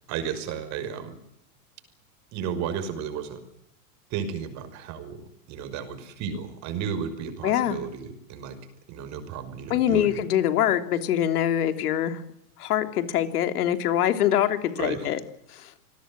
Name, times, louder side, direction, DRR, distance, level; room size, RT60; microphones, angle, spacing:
voice 1, 0.1-1.2 2.3-3.4 4.1-8.6 8.9-10.2 14.8-15.1, right 7 dB, 35° right, 10 dB, 5.8 m, -33 dB
voice 2, 7.4-7.8 9.7-12.2 12.6-15.2 15.5-15.7, left 10 dB, 70° left, 8 dB, 3.4 m, -24 dB
27.5 x 20.5 x 7.7 m, 0.75 s
supercardioid pair, 145°, 46 cm